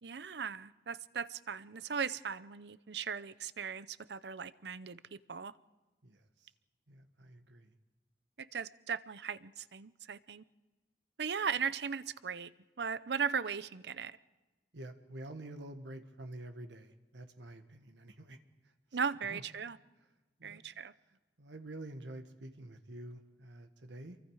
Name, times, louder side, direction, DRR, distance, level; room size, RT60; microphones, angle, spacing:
voice 1, 0.0-5.5 8.4-10.4 11.2-12.5 12.8-14.2 18.9-19.8 20.4-20.9, right 6 dB, 65° right, 16 dB, 0.6 m, -38 dB
voice 2, 6.0-6.5 6.9-7.7 14.7-18.4 18.6-19.0 19.3-19.4 20.4-20.6 21.1-24.3, right 1 dB, 85° right, 7 dB, 1.5 m, -48 dB
28.0 x 23.5 x 4.9 m, 1.2 s
head